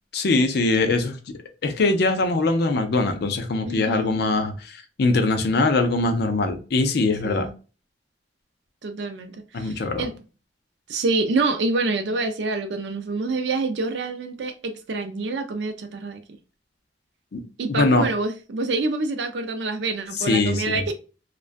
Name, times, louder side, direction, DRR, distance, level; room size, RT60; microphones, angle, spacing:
voice 1, 0.1-1.2 1.6-7.5 9.5-10.1 17.3-17.4 17.7-18.1 20.2-20.8, left 3 dB, 65° left, 0.5 m, -22 dB
voice 2, 3.7-4.2 7.2-7.5 8.8-10.1 10.9-16.4 17.6-20.9, right 3 dB, 70° right, 0.4 m, -27 dB
2.4 x 2.1 x 2.4 m
head